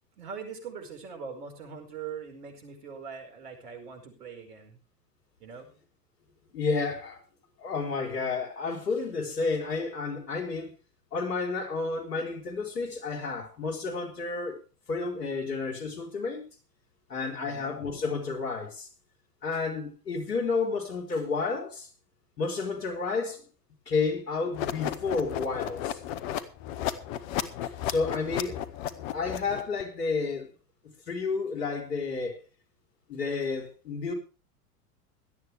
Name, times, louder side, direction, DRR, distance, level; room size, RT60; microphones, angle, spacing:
voice 1, 0.2-4.8 5.4-5.7 17.3-17.8 28.2-28.5, right 6 dB, 75° right, 5 dB, 5.2 m, -42 dB
voice 2, 6.5-7.2 7.6-10.7 11.1-14.6 14.9-16.5 17.1-18.9 19.4-21.9 22.4-23.4 23.9-26.0 27.6-28.6 29.1-30.5 31.1-32.4 33.1-34.1, left 4 dB, 80° left, 3 dB, 4.5 m, -31 dB
sound 1, 24.5-29.8, left 11 dB, 55° left, 1.7 m, -33 dB
17.5 x 13.0 x 3.4 m, 0.33 s
hypercardioid pair, 95°, 47 cm